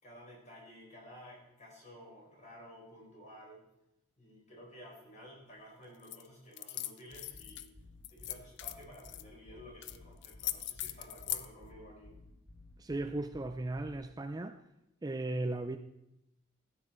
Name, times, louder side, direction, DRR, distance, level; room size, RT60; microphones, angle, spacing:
voice 1, 0.0-3.6 4.2-7.7 8.1-12.1, equal, 35° left, 4.5 m, -53 dB
sound 1, 6.0-6.2 6.5-7.7 8.0-9.2 9.8-10.0 10.2-11.5, left 14 dB, 55° left, 0.5 m, -39 dB
sound 2, 7.1-14.0, left 2 dB, 90° left, 3.6 m, -56 dB
voice 2, 12.8-14.6 15.0-15.8, right 2 dB, 20° right, 0.4 m, -36 dB
13.5 x 8.8 x 4.4 m
head